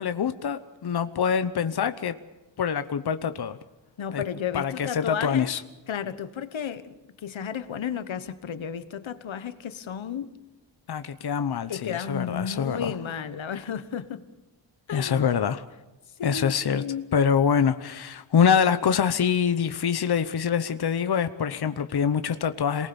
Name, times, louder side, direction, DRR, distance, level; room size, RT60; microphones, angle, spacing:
voice 1, 0.0-2.2 2.6-3.6 4.1-4.2 4.5-5.6 10.9-12.9 14.9-15.6 16.2-16.8 17.1-22.9, left 7 dB, 55° left, 0.9 m, -25 dB
voice 2, 4.0-5.5 5.9-6.9 7.2-10.3 11.7-14.3 14.9-15.2 16.2-17.1, left 7 dB, 85° left, 1.3 m, -33 dB
27.0 x 19.5 x 7.1 m
wide cardioid pair, 150°, 45 cm